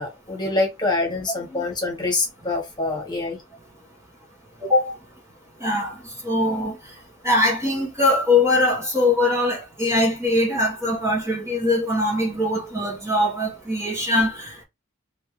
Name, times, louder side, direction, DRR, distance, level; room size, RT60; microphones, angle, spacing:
voice 1, 0.0-3.4, left 2 dB, 20° left, 1.6 m, -25 dB
voice 2, 4.6-4.9 5.6-5.9 6.2-6.7 7.2-14.6, left 2 dB, 15° right, 1.3 m, -21 dB
3.6 x 3.4 x 3.2 m
head